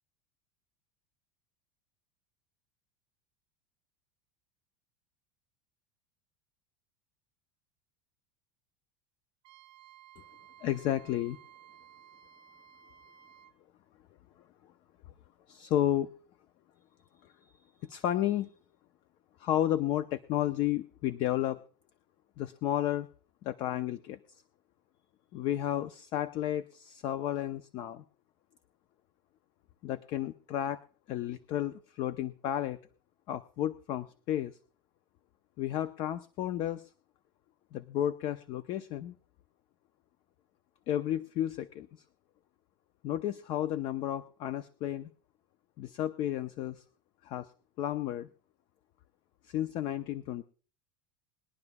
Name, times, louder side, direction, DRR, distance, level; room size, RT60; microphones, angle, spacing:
Wind instrument woodwind instrument, 9.4-13.6, right 11 dB, 45° right, 0.7 m, -56 dB
voice 1, 10.6-11.4 15.5-16.1 17.2-18.5 19.4-21.6 22.4-23.1 23.4-24.4 25.3-28.0 29.8-32.8 33.3-34.6 35.6-36.9 37.7-39.2 40.9-42.0 43.0-45.1 45.8-46.8 47.2-47.5 47.8-48.3 49.4-50.4, left 12 dB, 45° left, 12 dB, 0.6 m, -32 dB
21.0 x 11.0 x 2.3 m, 0.39 s
supercardioid pair, 155°, 11 cm